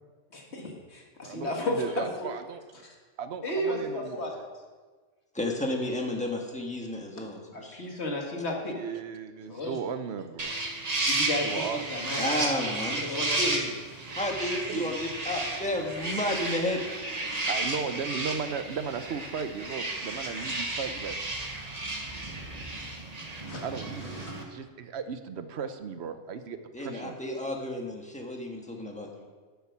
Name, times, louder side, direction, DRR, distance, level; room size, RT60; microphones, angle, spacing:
voice 1, 0.3-2.3 2.8-2.9 3.4-4.3 7.5-8.7 9.5-9.8 11.1-11.5 11.9-12.5 13.0-13.7 23.5-23.6, left 1 dB, 65° left, 0 dB, 2.0 m, -33 dB
voice 2, 1.2-2.6 3.2-4.4 8.7-10.6 11.4-12.1 14.7-15.0 17.5-21.2 23.6-27.1, right 6 dB, 65° right, 10 dB, 1.0 m, -36 dB
voice 3, 5.3-7.9 12.2-13.6 14.1-16.8 26.7-29.2, left 1 dB, 5° left, 0 dB, 1.5 m, -32 dB
sound 1, 10.4-24.4, right 2 dB, 35° right, 1.3 m, -33 dB
12.0 x 6.9 x 6.0 m, 1.4 s
omnidirectional pair, 1.2 m